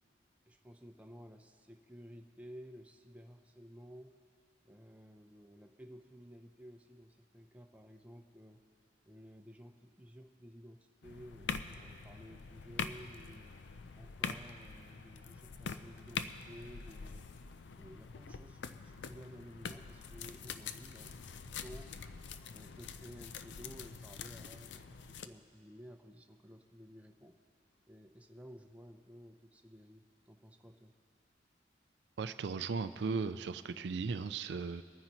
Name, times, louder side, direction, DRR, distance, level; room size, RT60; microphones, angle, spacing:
voice 1, 0.5-4.1 4.6-8.6 9.0-13.5 13.9-17.2 17.8-22.0 22.5-27.4 27.9-30.9, equal, 10° right, 4 dB, 0.6 m, -54 dB
sound 1, 11.0-25.3, left 5 dB, 80° left, 0.5 m, -45 dB
voice 2, 32.2-34.8, right 4 dB, 70° right, 11 dB, 0.4 m, -37 dB
24.0 x 9.6 x 3.0 m, 2.5 s
head